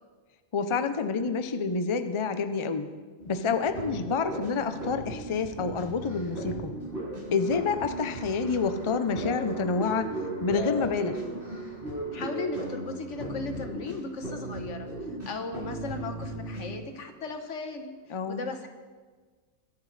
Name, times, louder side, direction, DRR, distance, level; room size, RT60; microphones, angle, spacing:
voice 1, 0.5-2.9 3.3-6.7 7.3-10.1 10.4-11.2 18.1-18.4, left 5 dB, 35° left, 9 dB, 0.6 m, -28 dB
sound 1, 3.2-16.7, right 1 dB, 65° right, 5.1 m, -37 dB
sound 2, 3.9-4.5 6.7-18.1, right 3 dB, 15° right, 2.8 m, -47 dB
voice 2, 12.1-14.9 15.2-18.7, left 3 dB, 80° left, 6 dB, 1.5 m, -37 dB
22.5 x 10.5 x 3.3 m, 1.4 s
omnidirectional pair, 1.2 m